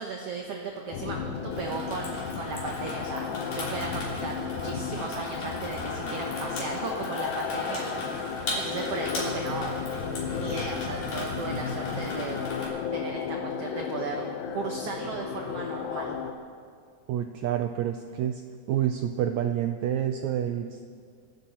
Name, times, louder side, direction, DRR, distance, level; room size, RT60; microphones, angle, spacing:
voice 1, 0.0-8.2 8.5-9.9 10.3-12.4 12.9-16.2, right 4 dB, 60° right, 1 dB, 1.7 m, -36 dB
sound 1, 0.9-16.3, left 7 dB, 85° left, 2.7 m, -34 dB
Water tap faucet / Sink (filling or washing), 1.5-12.7, left 2 dB, 65° left, 4.8 m, -37 dB
voice 2, 17.1-18.4 18.7-20.8, right 10 dB, 90° right, 6 dB, 1.6 m, -28 dB
27.0 x 11.5 x 4.3 m, 2.1 s
omnidirectional pair, 4.0 m